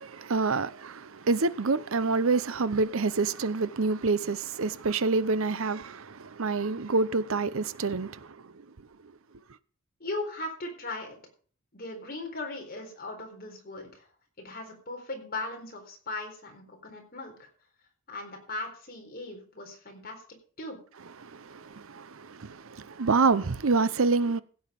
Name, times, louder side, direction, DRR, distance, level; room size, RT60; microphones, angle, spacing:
voice 1, 0.0-8.3 21.2-24.4, right 4 dB, 65° right, 0.7 m, -27 dB
voice 2, 10.0-11.2 11.7-14.1 14.4-17.5 18.1-20.2 20.6-20.8, left 2 dB, 40° left, 4.1 m, -38 dB
16.0 x 8.0 x 5.2 m
head